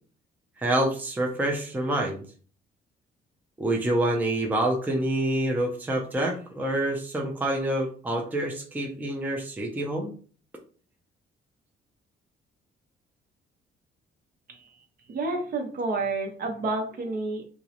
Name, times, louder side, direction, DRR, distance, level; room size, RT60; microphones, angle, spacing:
voice 1, 0.6-2.2 3.6-10.1, right 1 dB, 10° right, 0 dB, 0.5 m, -27 dB
voice 2, 15.1-17.4, right 3 dB, 50° right, 3 dB, 0.7 m, -30 dB
2.3 x 2.0 x 2.8 m, 0.41 s
cardioid pair, 90°, 20 cm